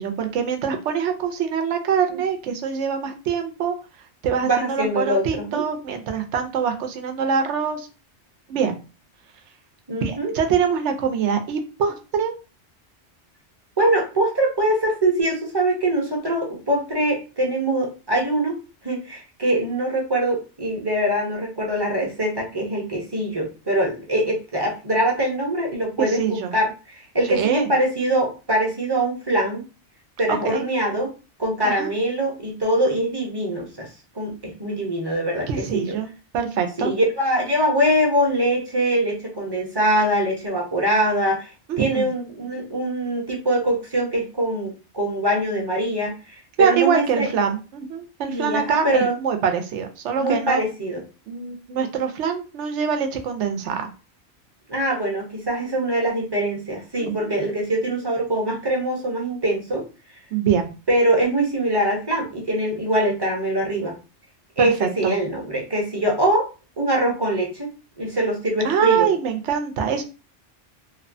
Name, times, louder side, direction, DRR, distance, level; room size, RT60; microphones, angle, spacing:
voice 1, 0.0-3.7 4.2-7.9 8.5-8.8 10.0-12.3 26.0-26.5 27.3-27.7 30.3-30.7 31.6-31.9 35.5-36.1 36.3-36.9 41.7-42.1 46.6-50.6 51.3-53.9 57.0-57.3 60.3-60.7 64.6-65.1 68.6-70.0, right 7 dB, 85° right, 5 dB, 0.9 m, -24 dB
voice 2, 4.4-5.6 9.9-10.3 13.8-18.6 18.8-26.2 26.5-29.6 30.2-31.1 31.4-33.9 34.1-36.0 36.8-41.5 41.8-46.1 46.6-47.3 48.3-49.2 50.2-51.0 54.7-59.9 60.9-63.9 64.6-66.5 66.8-67.7 68.0-69.1, right 1 dB, 25° right, -2 dB, 0.7 m, -23 dB
2.9 x 2.1 x 2.5 m, 0.31 s
omnidirectional pair, 1.2 m